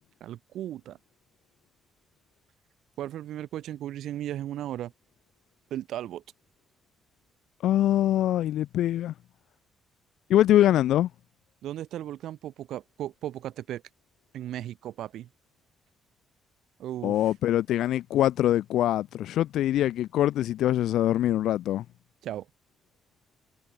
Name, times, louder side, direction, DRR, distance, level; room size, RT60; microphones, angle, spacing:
voice 1, 0.2-1.0 3.0-4.9 5.7-6.2 11.6-13.8 14.3-15.3 16.8-17.2 22.2-22.5, right 12 dB, 80° right, 4.2 m, -36 dB
voice 2, 7.6-9.1 10.3-11.1 17.0-21.8, left 12 dB, 80° left, 0.6 m, -23 dB
cardioid pair, 90°, 0 cm